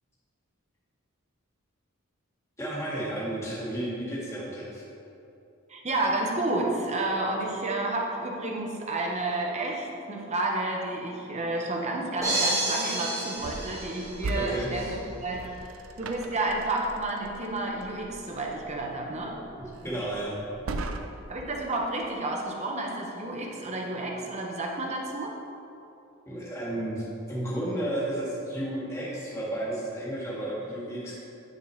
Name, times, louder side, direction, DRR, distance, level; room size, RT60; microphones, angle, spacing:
voice 1, 2.6-4.8 14.3-15.0 19.8-20.4 26.3-31.1, right 1 dB, 15° left, -7 dB, 1.8 m, -32 dB
voice 2, 5.7-15.5 16.0-19.4 21.3-25.3, right 2 dB, 30° right, 0 dB, 0.9 m, -30 dB
sound 1, 12.2-14.5, right 1 dB, 15° right, 1.7 m, -29 dB
sound 2, 13.4-21.4, right 2 dB, 75° right, 0.5 m, -39 dB
9.0 x 6.5 x 3.2 m, 2.8 s
head